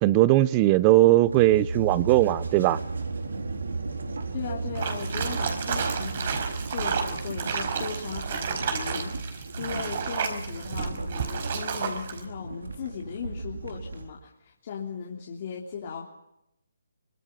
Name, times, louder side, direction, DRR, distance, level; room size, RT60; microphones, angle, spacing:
voice 1, 0.0-2.8, right 16 dB, 25° right, 17 dB, 0.8 m, -19 dB
sound 1, 1.3-14.1, right 3 dB, 80° right, 3.6 m, -35 dB
voice 2, 4.3-16.1, left 6 dB, 45° left, -2 dB, 3.3 m, -37 dB
sound 2, 4.7-12.2, right 6 dB, 50° right, 5.0 m, -31 dB
25.0 x 22.0 x 5.7 m, 0.83 s
hypercardioid pair, 155°, 0 cm